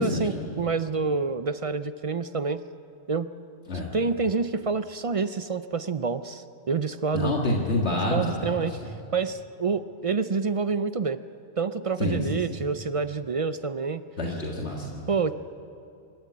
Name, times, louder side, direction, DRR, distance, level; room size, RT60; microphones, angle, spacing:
voice 1, 0.0-2.6 3.1-3.3 3.9-7.4 8.1-11.2 11.6-14.0 15.1-15.4, right 4 dB, 45° right, 13 dB, 0.4 m, -28 dB
voice 2, 7.1-8.8 12.0-12.2 14.2-15.0, left 1 dB, 70° left, -1 dB, 2.1 m, -27 dB
26.0 x 13.0 x 8.5 m, 2.6 s
omnidirectional pair, 1.2 m